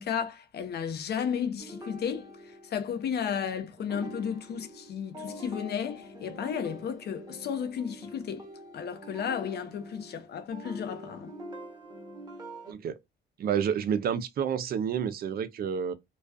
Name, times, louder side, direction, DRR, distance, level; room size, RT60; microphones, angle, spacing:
voice 1, 0.0-2.3 2.7-8.5 8.7-11.3, left 7 dB, 55° left, 0.6 m, -33 dB
sound 1, 1.6-3.4 3.8-12.7, equal, 20° right, 0.9 m, -45 dB
voice 2, 12.7-13.0 13.4-15.9, right 8 dB, 50° right, 0.4 m, -29 dB
2.3 x 2.2 x 2.4 m
cardioid pair, 90°, 20 cm